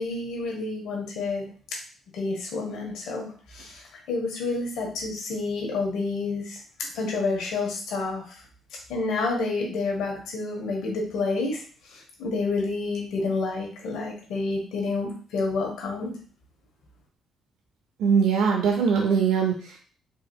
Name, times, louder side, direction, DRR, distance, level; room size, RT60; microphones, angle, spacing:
voice 1, 0.0-1.5 2.1-3.8 4.1-6.6 6.9-8.2 8.9-11.6 11.9-16.1, left 3 dB, 85° left, 0 dB, 1.0 m, -29 dB
voice 2, 18.0-19.8, right 6 dB, 80° right, 1 dB, 0.5 m, -22 dB
3.8 x 2.8 x 2.2 m, 0.41 s
cardioid pair, 90°, 0 cm